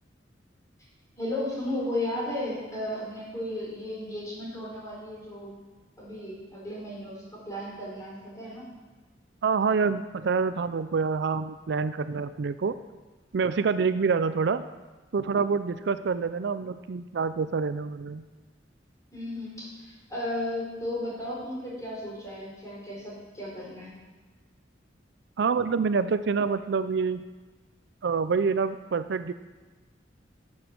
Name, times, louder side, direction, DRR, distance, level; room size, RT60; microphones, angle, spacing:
voice 1, 1.2-5.6 6.0-8.6 19.1-23.9, left 1 dB, 20° left, -6 dB, 4.5 m, -34 dB
voice 2, 9.4-12.8 13.3-14.6 15.1-18.2 25.4-27.2 28.0-29.3, right 5 dB, 65° right, 12 dB, 0.4 m, -26 dB
13.0 x 7.2 x 6.1 m, 1.3 s
head